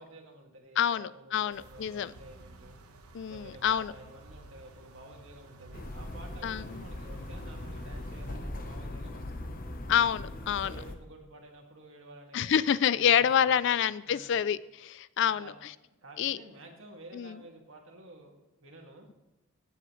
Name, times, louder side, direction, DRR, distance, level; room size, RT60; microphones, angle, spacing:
voice 1, 0.0-2.8 3.3-9.5 10.5-12.6 12.9-13.7 14.1-14.4 15.2-15.5 15.8-19.1, right 1 dB, 60° right, 2 dB, 2.1 m, -51 dB
voice 2, 0.8-2.1 3.1-3.9 6.4-6.8 9.9-10.7 12.3-15.5 16.2-16.4 17.1-17.4, left 9 dB, 55° left, 18 dB, 0.3 m, -27 dB
sound 1, 1.5-8.4, right 2 dB, 85° right, 1.1 m, -52 dB
sound 2, 5.7-10.9, left 1 dB, 40° left, 1.0 m, -40 dB
17.0 x 7.7 x 3.1 m, 0.99 s
head